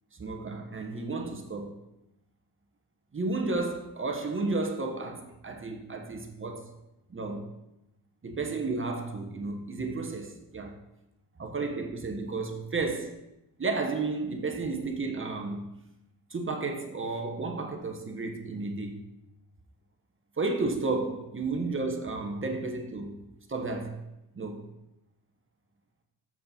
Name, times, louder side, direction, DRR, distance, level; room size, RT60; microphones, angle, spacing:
voice 1, 0.2-1.8 3.1-6.7 7.1-7.5 8.2-10.8 11.4-13.2 13.6-15.6 16.3-19.0 20.4-23.2 23.5-24.0 24.3-24.7, right 3 dB, 30° right, 1.2 m, -32 dB
7.4 x 6.5 x 4.3 m
cardioid pair, 75°, 41 cm